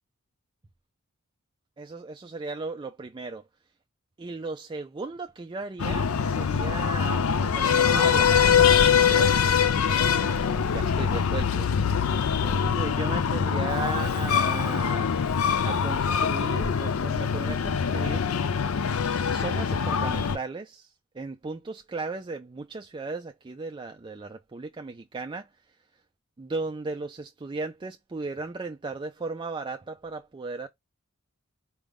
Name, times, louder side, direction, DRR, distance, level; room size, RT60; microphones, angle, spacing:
voice 1, 1.8-3.4 4.2-10.3 10.7-11.7 12.0-15.1 15.6-18.3 19.3-25.5 26.4-30.7, right 3 dB, 25° right, 0.4 m, -36 dB
Breathing, 5.8-20.4, left 7 dB, 85° left, 0.5 m, -23 dB
4.8 x 2.3 x 3.5 m
head